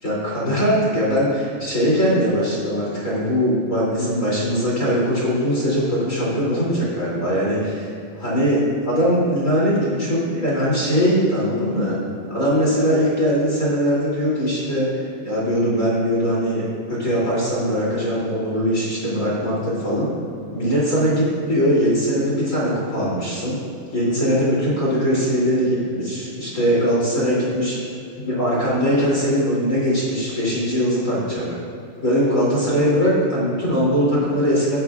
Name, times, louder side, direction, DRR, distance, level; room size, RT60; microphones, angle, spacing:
voice 1, 0.0-7.7 8.2-12.0 12.3-16.6 16.9-20.1 20.5-23.6 23.9-27.8 28.2-31.5 32.0-34.8, equal, 20° left, -7 dB, 2.5 m, -21 dB
19.0 x 9.1 x 2.4 m, 2.7 s
omnidirectional pair, 4.8 m